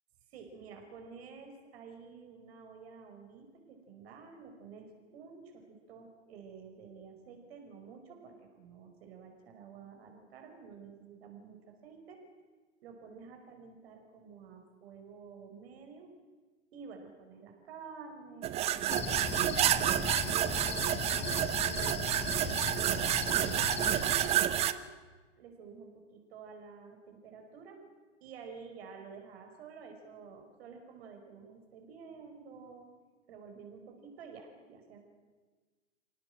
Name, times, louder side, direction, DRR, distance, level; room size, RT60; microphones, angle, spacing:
voice 1, 0.3-12.2 12.8-16.1 16.7-19.9 20.3-22.6 23.2-24.9 25.4-27.8 28.2-32.9 33.3-35.0, right 5 dB, 50° right, 4 dB, 5.3 m, -50 dB
sound 1, 18.4-24.7, right 12 dB, 15° right, 0.6 m, -29 dB
Cricket, 18.9-24.4, left 7 dB, 15° left, 1.1 m, -38 dB
26.0 x 17.5 x 7.8 m, 1.4 s
figure-of-eight pair, 110°, 38 cm